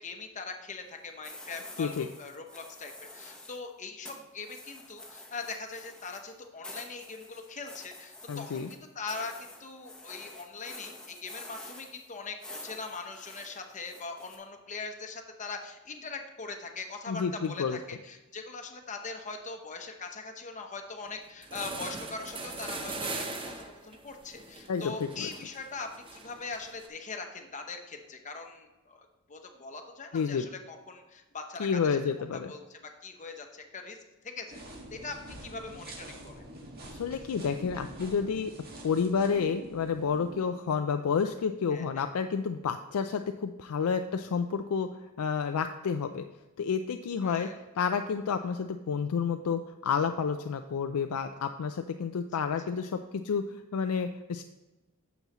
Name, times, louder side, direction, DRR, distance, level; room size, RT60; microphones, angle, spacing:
voice 1, 0.0-32.0 32.5-34.0 34.2-36.4 41.7-42.1 47.2-47.6, left 4 dB, 35° left, 5 dB, 0.9 m, -41 dB
sound 1, 1.2-3.7 4.0-14.4, left 2 dB, 5° left, 1.1 m, -48 dB
voice 2, 8.3-8.7 17.1-17.8 24.7-25.3 30.1-30.5 31.6-32.5 36.9-38.5 38.8-46.2 46.6-47.5 47.8-53.0 53.2-54.4, left 6 dB, 85° left, 7 dB, 0.4 m, -30 dB
sound 2, 21.1-21.2 21.4-26.9, right 3 dB, 25° right, 0.8 m, -40 dB
sound 3, 34.5-40.4, right 1 dB, 45° right, 1.5 m, -46 dB
9.2 x 7.0 x 3.0 m, 1.1 s
head